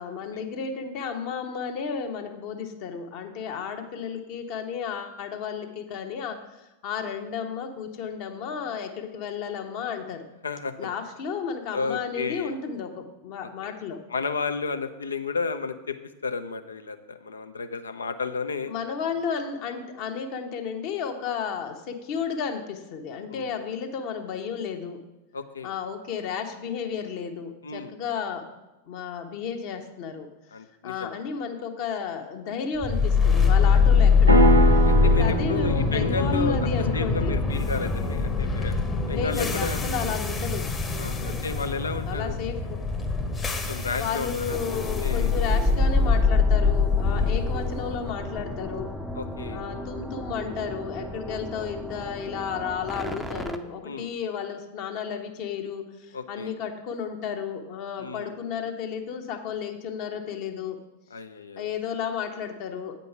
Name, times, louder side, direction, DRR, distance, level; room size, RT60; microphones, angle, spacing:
voice 1, 0.0-10.3 10.8-14.0 18.7-25.0 25.6-28.5 28.9-30.3 30.8-34.7 35.1-37.3 39.1-40.7 41.1-41.4 42.1-42.8 44.0-48.9 49.5-60.8 61.6-63.0, left 6 dB, 45° left, 5 dB, 1.0 m, -33 dB
voice 2, 10.4-10.9 11.7-12.6 13.6-13.7 14.1-16.0 16.2-18.7 23.3-23.6 25.3-25.7 27.6-27.9 30.5-31.1 33.5-33.8 34.8-38.8 39.1-39.8 41.0-42.3 43.6-44.6 45.0-45.3 47.1-47.3 49.2-49.6 53.8-54.1 56.1-56.5 58.0-58.3 61.1-61.7, left 4 dB, 75° left, 10 dB, 0.6 m, -32 dB
sound 1, 32.8-50.9, left 4 dB, 15° left, 0.9 m, -23 dB
sound 2, 34.3-38.4, right 3 dB, 90° right, 0.8 m, -26 dB
sound 3, 44.5-53.6, right 1 dB, 5° right, 0.6 m, -37 dB
8.5 x 5.3 x 5.9 m, 1.0 s
figure-of-eight pair, 90°, 0 cm